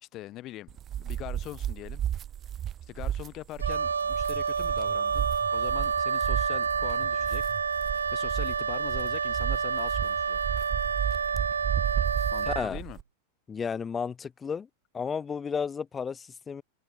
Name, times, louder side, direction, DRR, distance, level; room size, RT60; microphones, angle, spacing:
voice 1, 0.0-2.0 2.9-7.4 8.1-10.4 12.3-13.0, left 15 dB, 35° left, 4.8 m, -42 dB
sound 1, 0.7-13.0, right 10 dB, 30° right, 0.7 m, -33 dB
Wind instrument woodwind instrument, 3.6-12.7, right 6 dB, 70° right, 0.4 m, -29 dB
voice 2, 12.5-12.8 13.5-14.7 14.9-16.6, left 6 dB, 20° left, 6.1 m, -32 dB
figure-of-eight pair, 90°, 0 cm